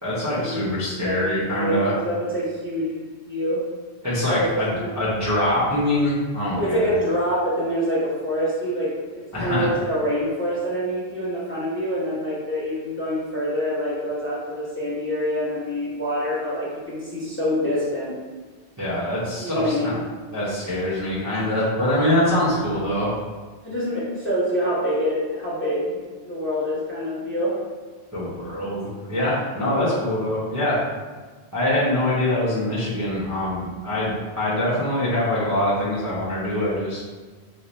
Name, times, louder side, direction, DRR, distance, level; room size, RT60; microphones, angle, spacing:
voice 1, 0.0-1.9 4.0-6.9 9.3-9.7 18.8-19.9 20.3-23.1 28.1-30.8 31.5-37.0, left 1 dB, 20° right, -10 dB, 0.7 m, -24 dB
voice 2, 1.0-3.6 4.3-4.9 6.5-18.1 19.4-20.0 23.6-26.0 26.2-27.5 29.7-30.0, equal, 10° left, -8 dB, 0.8 m, -26 dB
3.2 x 2.1 x 4.0 m, 1.4 s
omnidirectional pair, 1.1 m